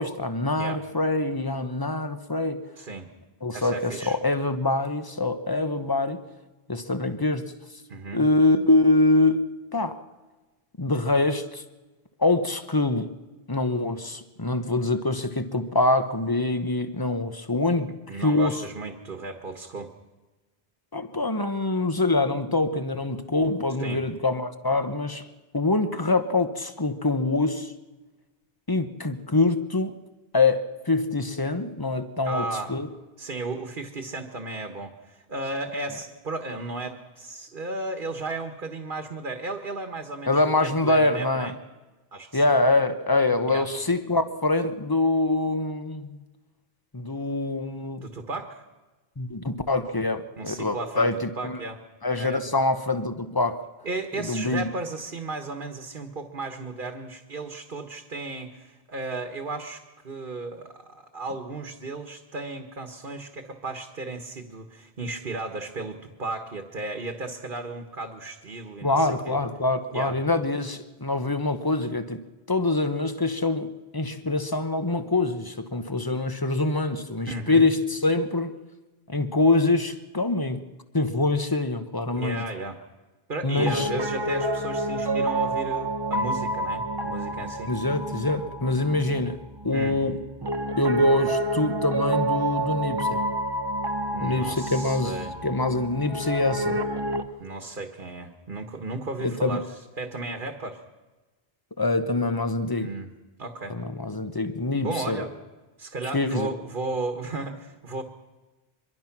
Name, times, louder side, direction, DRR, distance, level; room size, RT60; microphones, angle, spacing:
voice 1, 0.0-2.6 3.4-6.2 6.7-7.4 8.1-10.0 10.8-11.6 12.2-13.1 13.5-18.5 20.9-25.3 25.5-27.7 28.7-29.9 30.3-32.9 40.3-41.5 42.3-46.2 46.9-48.0 49.2-51.6 52.0-53.6 54.2-54.7 68.8-72.2 72.5-78.6 79.1-80.6 80.9-82.4 83.4-83.9 87.7-89.4 89.6-90.2 90.8-93.2 94.2-95.2 95.4-96.8 99.2-99.6 101.8-102.9 103.7-105.2 106.1-106.5, left 2 dB, 20° left, 10 dB, 1.1 m, -24 dB
voice 2, 2.8-3.1 3.5-4.2 7.9-8.2 17.9-19.9 23.8-24.0 32.2-32.7 33.2-41.5 42.1-42.4 43.5-43.7 48.0-48.6 50.4-51.1 51.4-51.8 52.1-52.4 53.8-69.4 69.9-70.2 77.3-77.7 82.1-82.8 83.3-87.7 89.7-90.0 94.1-95.3 97.4-99.7 100.0-100.8 102.8-103.1 103.4-103.8 104.8-105.3 105.8-108.0, right 2 dB, 55° right, 6 dB, 1.6 m, -34 dB
Piano, 83.6-97.3, right 1 dB, 25° right, 1.0 m, -29 dB
24.5 x 22.0 x 6.0 m, 1.2 s
omnidirectional pair, 1.1 m